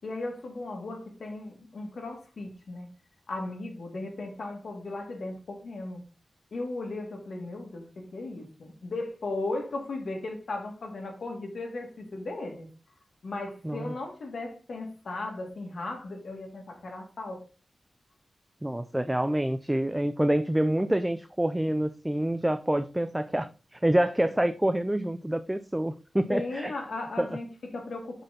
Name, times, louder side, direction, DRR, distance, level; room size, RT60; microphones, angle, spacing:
voice 1, 0.0-2.9 3.3-6.0 6.5-12.7 13.2-17.4 26.3-28.2, left 2 dB, 65° left, 2.3 m, -36 dB
voice 2, 18.6-26.7 27.2-27.3, right 1 dB, 10° right, 0.4 m, -27 dB
5.9 x 5.4 x 4.1 m
wide cardioid pair, 145°, 0 cm